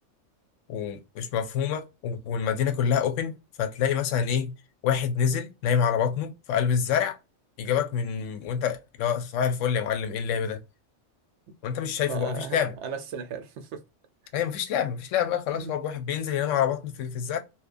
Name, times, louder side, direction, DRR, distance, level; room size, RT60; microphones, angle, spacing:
voice 1, 0.7-4.5 4.8-7.2 7.6-10.6 11.6-12.7 14.3-17.4, left 8 dB, 85° left, 0.9 m, -27 dB
voice 2, 12.1-13.8 15.5-15.7, right 6 dB, 70° right, 0.8 m, -36 dB
2.8 x 2.1 x 2.4 m
omnidirectional pair, 1.3 m